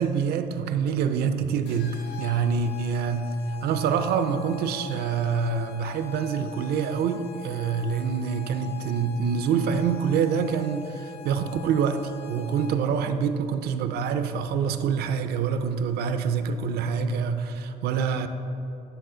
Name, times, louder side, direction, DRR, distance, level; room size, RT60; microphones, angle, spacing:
voice 1, 0.0-3.3 3.6-18.3, right 6 dB, 70° right, 9 dB, 0.5 m, -26 dB
sound 1, 1.7-13.0, left 12 dB, 85° left, 0.7 m, -43 dB
9.1 x 4.1 x 3.8 m, 2.9 s
cardioid pair, 110°, 17 cm